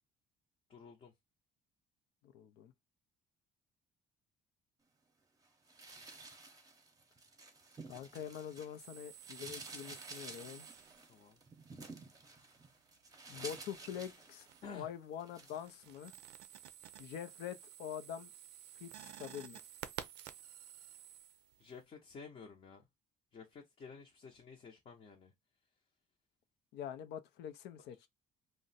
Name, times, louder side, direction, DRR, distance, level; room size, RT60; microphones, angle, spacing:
voice 1, 0.7-1.1 11.1-11.4 14.6-14.9 21.6-22.9 23.3-25.3, left 5 dB, 40° left, 0.6 m, -52 dB
voice 2, 2.2-2.7 7.9-10.7 13.3-14.5 14.7-16.1 17.0-18.3 18.8-19.6 26.7-28.1, left 9 dB, 80° left, 0.5 m, -45 dB
sound 1, 5.7-8.8 9.1-14.8 15.2-15.6, right 3 dB, 20° right, 0.7 m, -52 dB
sound 2, 8.8-11.3 13.7-14.8 15.1-21.8, right 11 dB, 80° right, 0.4 m, -53 dB
2.5 x 2.1 x 3.9 m
cardioid pair, 110°, 17 cm